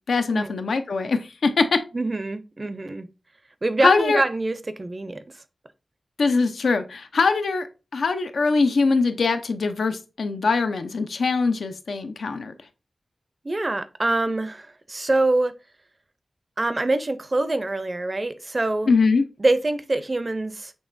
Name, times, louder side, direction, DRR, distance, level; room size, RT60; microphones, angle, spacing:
voice 1, 0.1-1.8 3.8-4.2 6.2-7.7 7.9-12.5 18.9-19.3, left 4 dB, 90° left, 0.5 m, -22 dB
voice 2, 1.9-3.1 3.6-5.4 13.4-15.5 16.6-18.9 19.4-20.7, right 2 dB, 30° right, 0.4 m, -25 dB
6.2 x 3.2 x 2.5 m
wide cardioid pair, 125°, 0 cm